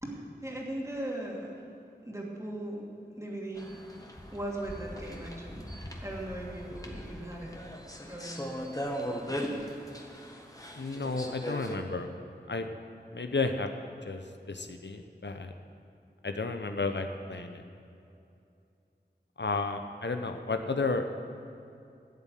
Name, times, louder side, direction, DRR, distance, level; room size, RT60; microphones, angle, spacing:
voice 1, 0.0-1.6 2.0-2.9 3.2-3.8 4.3-5.7 6.0-7.6 8.0-8.5 9.4-9.5, right 1 dB, 15° right, -3 dB, 2.6 m, -38 dB
sound 1, 3.6-11.8, equal, 20° left, 1.6 m, -39 dB
voice 2, 10.7-12.1 12.5-12.7 13.1-13.7 14.0-14.2 14.5-15.5 16.2-17.6 19.4-21.1, left 3 dB, 80° left, 6 dB, 0.8 m, -32 dB
12.5 x 7.3 x 9.3 m, 2.6 s
wide cardioid pair, 40°, 18 cm